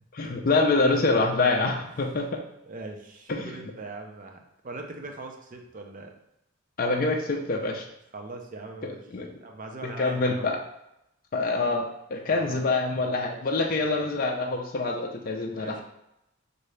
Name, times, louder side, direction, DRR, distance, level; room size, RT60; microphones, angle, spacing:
voice 1, 0.1-2.4 3.3-3.5 6.8-7.8 8.8-9.3 10.0-10.6 11.3-15.8, left 3 dB, 45° left, 1 dB, 0.5 m, -26 dB
voice 2, 2.7-4.4 4.6-6.1 8.1-9.1 9.4-10.5 12.3-12.7 13.8-14.2 15.6-15.8, right 3 dB, 40° right, 3 dB, 0.6 m, -41 dB
5.6 x 2.6 x 3.2 m, 0.83 s
head